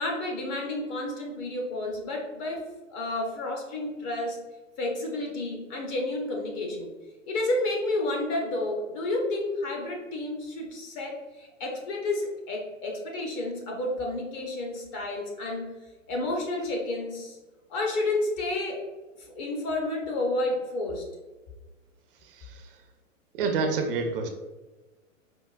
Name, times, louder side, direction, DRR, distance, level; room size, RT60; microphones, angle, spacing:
voice 1, 0.0-4.4 4.8-6.9 7.3-15.7 16.1-17.4 17.7-18.8 19.4-21.0, left 2 dB, 25° left, 0 dB, 0.4 m, -30 dB
voice 2, 23.3-24.3, right 4 dB, 45° right, 5 dB, 0.4 m, -28 dB
4.5 x 2.0 x 2.3 m, 1.2 s
hypercardioid pair, 120°, 39 cm